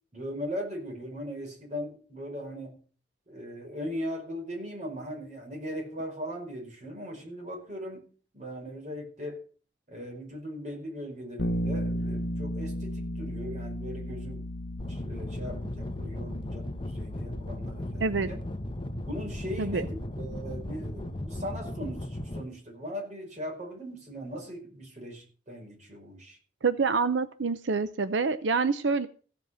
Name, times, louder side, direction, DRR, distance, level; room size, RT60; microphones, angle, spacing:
voice 1, 0.1-2.8 3.3-8.0 8.3-9.4 9.9-14.5 14.9-18.4 19.0-26.4, equal, 40° right, 4.9 m, -39 dB
Bass guitar, 11.4-21.2, equal, 75° left, 0.8 m, -36 dB
sound 1, 14.8-22.4, left 1 dB, 30° left, 1.0 m, -37 dB
voice 2, 26.6-29.1, right 4 dB, 85° right, 0.7 m, -26 dB
15.5 x 7.6 x 6.3 m
head